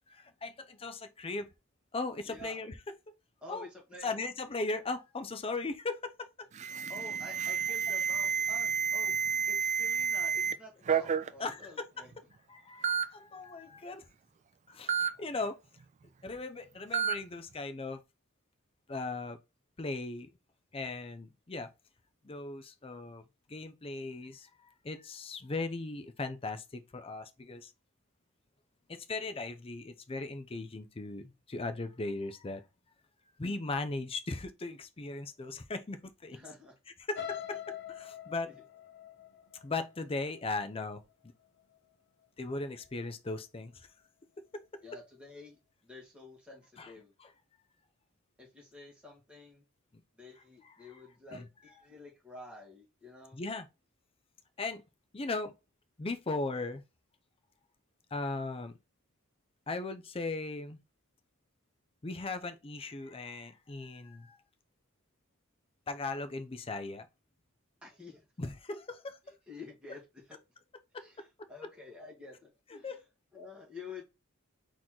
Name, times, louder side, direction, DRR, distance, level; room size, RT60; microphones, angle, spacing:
voice 1, 0.1-1.5 1.9-2.7 3.1-3.2 3.5-3.7 4.0-6.5 11.4-11.6 12.5-14.0 14.7-15.6 16.2-18.0 18.9-19.4 19.8-20.3 20.7-21.7 22.2-23.2 23.5-24.5 24.8-27.7 28.9-32.6 33.4-36.4 37.1-38.5 39.6-41.0 42.4-43.9 44.5-44.6 46.8-46.9 47.2-47.3 51.3-51.4 53.3-53.7 54.6-54.8 55.1-55.5 56.0-56.8 58.1-58.7 59.7-60.8 62.0-64.4 65.9-67.1 68.4-69.2 72.8-73.0, left 3 dB, 25° left, 0.5 m, -38 dB
voice 2, 2.3-2.6 3.4-4.1 6.9-9.1 9.5-12.1 36.3-36.7 38.4-38.6 44.8-47.1 48.4-49.6 50.2-53.4 67.8-68.3 69.2-70.4 71.0-73.0 73.3-74.0, left 3 dB, 5° right, 1.7 m, -50 dB
Alarm, 6.6-10.5 10.9-11.3 12.1-12.2 12.8-13.0 14.9-15.1 16.9-17.1, right 7 dB, 35° right, 0.3 m, -30 dB
sound 1, 37.1-41.1 41.6-41.9 42.2-42.3, left 9 dB, 55° left, 0.8 m, -44 dB
4.1 x 3.0 x 3.8 m
head